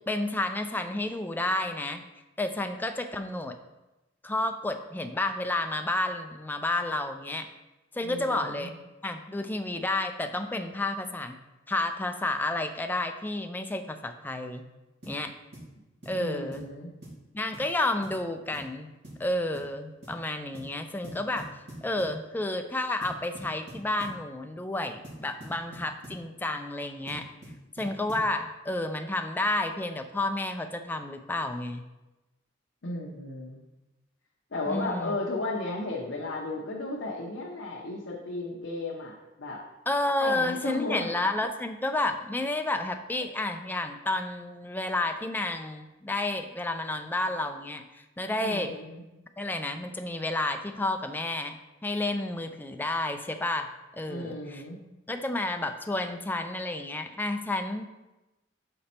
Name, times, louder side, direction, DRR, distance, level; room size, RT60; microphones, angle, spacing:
voice 1, 0.0-2.0 2.4-3.6 4.2-7.5 7.9-8.8 9.0-11.4 11.7-14.6 15.1-15.3 16.1-16.7 17.3-18.9 19.2-21.5 21.8-27.3 27.8-31.8 34.7-35.1 39.9-48.7 49.4-53.7 53.9-54.6 55.1-57.8, left 2 dB, 10° left, 6 dB, 0.4 m, -31 dB
voice 2, 8.0-8.7 16.1-16.9 32.8-33.6 34.5-39.6 40.2-41.1 48.4-49.0 54.1-54.8, left 2 dB, 70° left, -4 dB, 0.9 m, -34 dB
sound 1, 15.0-15.2 15.5-15.7 16.0-16.2 16.5-16.7 17.0-17.2 17.5-17.7 18.0-18.2 18.5-18.7 19.0-19.3 19.5-19.7 20.0-20.2 20.5-20.7 21.0-22.2 23.0-24.2 25.0-26.2 27.1-28.3, right 1 dB, 60° right, 2.1 m, -44 dB
6.7 x 4.2 x 4.3 m, 1.0 s
head